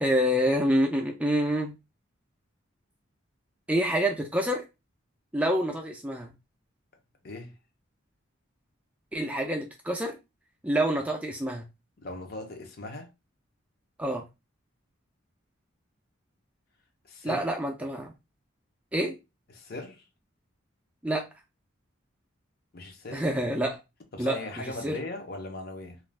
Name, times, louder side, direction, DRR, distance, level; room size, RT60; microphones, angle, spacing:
voice 1, 0.0-1.8 3.7-4.6 5.3-6.3 9.1-10.2 10.6-11.6 14.0-14.2 17.2-18.1 18.9-19.2 21.0-21.2 23.1-23.8 24.2-25.0, equal, 5° right, 0.4 m, -27 dB
voice 2, 12.0-13.1 17.1-17.4 19.5-20.0 22.7-23.2 24.1-26.0, left 2 dB, 50° left, 0.6 m, -39 dB
2.4 x 2.2 x 3.2 m
head